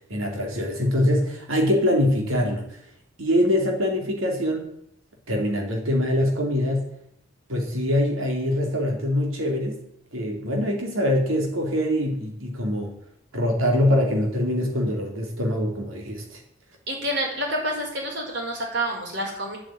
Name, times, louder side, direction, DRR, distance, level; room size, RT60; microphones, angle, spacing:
voice 1, 0.1-2.6 3.2-4.7 5.3-6.8 7.5-9.8 10.1-12.9 13.3-16.4, left 1 dB, 85° right, 1 dB, 3.9 m, -23 dB
voice 2, 16.9-19.6, right 1 dB, 60° right, -1 dB, 5.5 m, -28 dB
10.0 x 8.6 x 9.6 m, 0.73 s
head